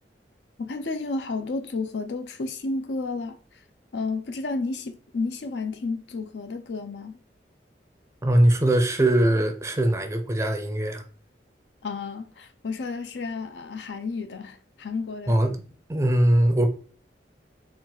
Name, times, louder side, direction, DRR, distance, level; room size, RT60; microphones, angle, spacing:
voice 1, 0.6-3.4 3.9-7.2 11.8-15.4, left 3 dB, 80° left, 0.5 m, -31 dB
voice 2, 8.2-11.0 15.3-15.6 15.9-16.7, right 1 dB, 15° right, 0.4 m, -21 dB
4.4 x 2.4 x 3.8 m
head